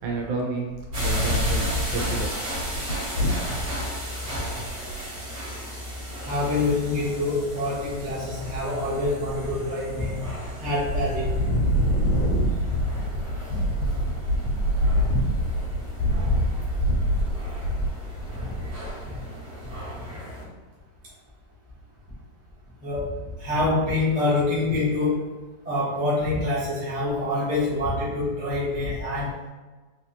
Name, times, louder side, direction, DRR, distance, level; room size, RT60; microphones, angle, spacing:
voice 1, 0.0-2.8, right 3 dB, 80° right, -1 dB, 1.5 m, -31 dB
Wind, 0.7-3.8 4.4-4.5 4.6-5.0 6.5-7.1 7.6-8.1 8.4-9.6 10.0-10.5 10.8-19.0, equal, 65° left, 1.2 m, -26 dB
sound 1, 0.9-20.4, equal, 40° right, 1.2 m, -36 dB
voice 2, 6.2-10.3 10.6-11.5 15.0-15.3 16.1-16.5 18.3-18.7 19.0-19.2 22.8-25.3 25.6-29.4, left 2 dB, 10° right, -8 dB, 0.4 m, -26 dB
3.5 x 3.2 x 2.8 m, 1.3 s
omnidirectional pair, 2.1 m